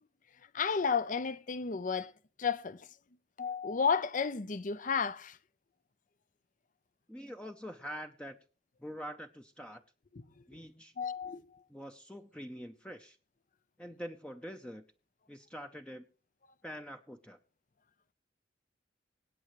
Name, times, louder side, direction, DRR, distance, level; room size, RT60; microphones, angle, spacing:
voice 1, 0.5-2.1 2.4-2.8 3.4-5.4 11.0-11.4, left 6 dB, 50° left, 0.7 m, -32 dB
voice 2, 7.1-8.4 8.8-9.8 10.5-10.9 11.7-13.2 13.8-14.8 15.3-16.0 16.6-17.4, equal, 5° left, 0.7 m, -45 dB
25.0 x 8.7 x 3.1 m
head